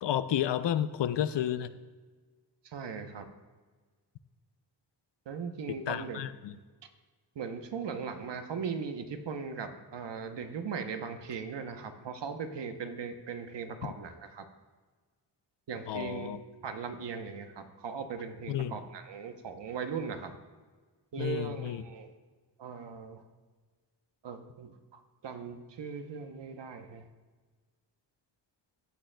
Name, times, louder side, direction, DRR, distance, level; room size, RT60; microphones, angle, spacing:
voice 1, 0.0-1.7 5.7-6.6 13.8-13.9 15.9-16.4 18.5-18.8 21.2-21.8, left 11 dB, 80° left, 13 dB, 0.5 m, -31 dB
voice 2, 2.6-3.3 5.3-6.2 7.4-14.4 15.7-20.3 21.1-22.1 22.6-23.2 24.2-24.7 25.2-27.0, right 6 dB, 80° right, 7 dB, 0.9 m, -39 dB
15.0 x 8.8 x 2.2 m, 1.4 s
wide cardioid pair, 140°, 42 cm